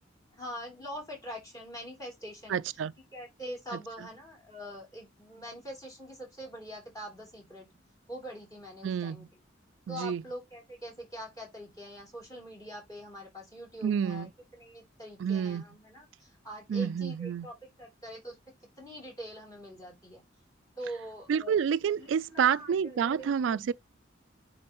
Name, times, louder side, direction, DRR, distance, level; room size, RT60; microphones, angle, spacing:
voice 1, 0.3-2.6 3.1-7.7 8.1-9.3 9.9-14.3 14.6-18.4 18.8-20.2 20.8-21.6 22.0-23.7, equal, 20° left, 3.3 m, -44 dB
voice 2, 2.5-2.9 8.8-9.3 9.9-10.2 13.8-14.3 15.2-15.6 16.7-17.5 21.3-23.7, right 7 dB, 85° right, 0.3 m, -29 dB
9.5 x 3.9 x 3.0 m
head